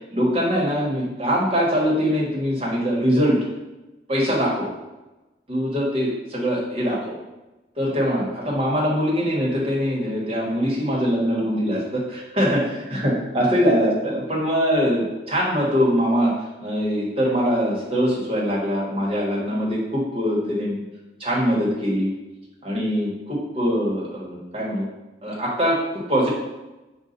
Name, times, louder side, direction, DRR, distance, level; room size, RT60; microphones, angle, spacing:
voice 1, 0.1-3.4 4.1-4.7 5.5-7.2 7.8-12.6 12.9-20.8 21.2-22.1 22.6-24.9 25.2-26.3, equal, 30° right, -5 dB, 1.2 m, -22 dB
5.4 x 2.4 x 3.9 m, 1.1 s
head